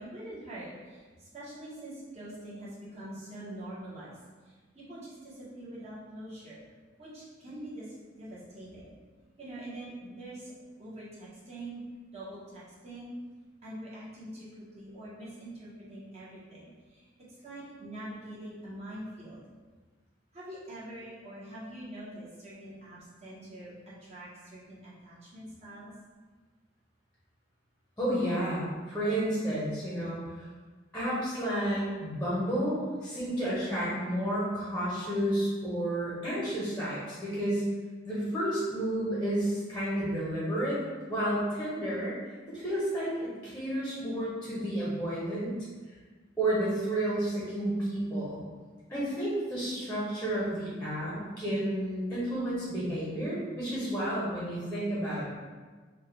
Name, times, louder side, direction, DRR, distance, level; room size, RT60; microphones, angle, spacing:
voice 1, 0.0-4.1 4.4-6.6 7.0-8.9 9.4-10.5 10.8-11.8 12.1-13.1 13.6-17.0 17.4-19.4 20.3-23.7 24.0-25.9, right 1 dB, 35° right, -9 dB, 1.3 m, -44 dB
voice 2, 28.0-30.4 30.9-37.6 38.0-40.8 41.1-42.1 42.5-45.5 46.4-48.4 48.9-55.3, right 1 dB, 5° left, -8 dB, 0.9 m, -31 dB
4.1 x 2.4 x 3.4 m, 1.4 s
head